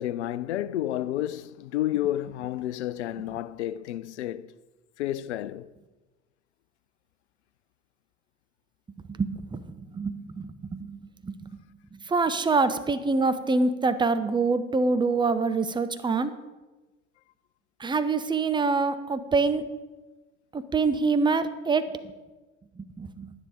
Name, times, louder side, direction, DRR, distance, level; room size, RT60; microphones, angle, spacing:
voice 1, 0.0-4.5 5.0-5.7, left 13 dB, 75° left, 0.5 m, -30 dB
voice 2, 9.1-16.3 17.8-19.6 20.5-22.1 22.7-23.3, right 4 dB, 15° right, 0.8 m, -26 dB
11.0 x 9.8 x 5.1 m
figure-of-eight pair, 75°, 35 cm